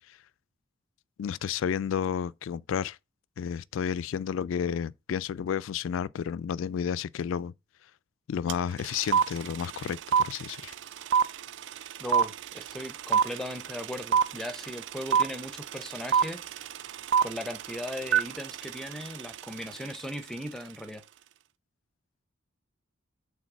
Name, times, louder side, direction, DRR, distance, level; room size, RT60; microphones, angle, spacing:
voice 1, 1.2-3.0 3.4-7.5 8.3-10.7, left 8 dB, 75° left, 0.3 m, -31 dB
sound 1, 8.5-8.6 8.8-20.0, right 7 dB, 60° right, 0.4 m, -26 dB
voice 2, 12.0-16.4 17.2-21.0, equal, ahead, 0.6 m, -38 dB
6.3 x 3.9 x 6.0 m
head